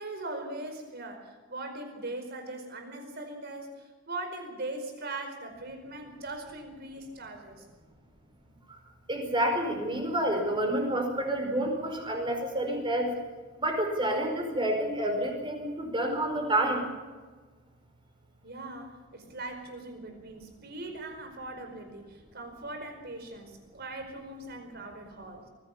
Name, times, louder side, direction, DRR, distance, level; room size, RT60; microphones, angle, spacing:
voice 1, 0.0-7.6 18.4-25.5, right 2 dB, 50° right, 5 dB, 4.9 m, -40 dB
voice 2, 9.1-13.1 13.6-16.9, right 1 dB, 25° right, 3 dB, 4.8 m, -29 dB
23.0 x 16.0 x 7.2 m, 1.4 s
head